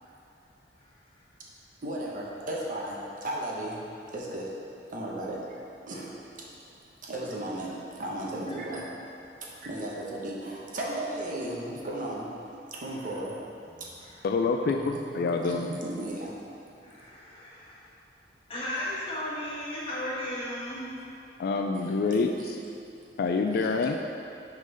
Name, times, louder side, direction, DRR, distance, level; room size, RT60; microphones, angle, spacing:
voice 1, 1.8-3.8 4.1-4.5 4.9-5.4 5.9-6.1 7.0-7.7 8.0-9.1 9.4-12.3 12.7-13.9 14.7-16.3 21.7-22.6 23.5-23.8, right 1 dB, 50° right, -4 dB, 1.0 m, -35 dB
voice 2, 14.2-15.7 21.4-22.6 23.2-24.0, left 4 dB, 60° left, 4 dB, 0.3 m, -27 dB
voice 3, 16.8-17.9 18.5-20.9, left 1 dB, 35° left, -8 dB, 1.5 m, -35 dB
6.2 x 3.8 x 5.4 m, 2.6 s
head